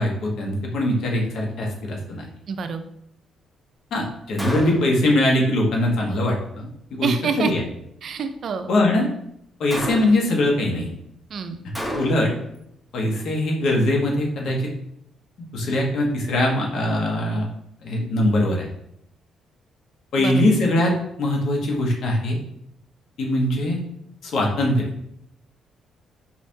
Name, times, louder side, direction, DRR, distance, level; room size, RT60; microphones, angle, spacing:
voice 1, 0.0-2.3 3.9-7.1 7.4-7.6 8.7-9.1 9.6-10.9 11.9-12.3 12.9-14.6 15.5-17.5 17.8-18.7 20.1-20.9 21.2-22.4 23.2-23.8 24.2-24.9, left 1 dB, 70° left, -1 dB, 1.2 m, -21 dB
voice 2, 2.5-2.8 7.0-7.5 8.0-8.7 11.3-11.6 20.2-20.4, right 5 dB, 60° right, 9 dB, 0.4 m, -26 dB
Gunshot gunfire, 4.4-5.1 9.7-10.4 11.7-12.4, equal, 5° left, 0.9 m, -30 dB
4.4 x 3.4 x 2.7 m, 0.73 s
cardioid pair, 90°, 0 cm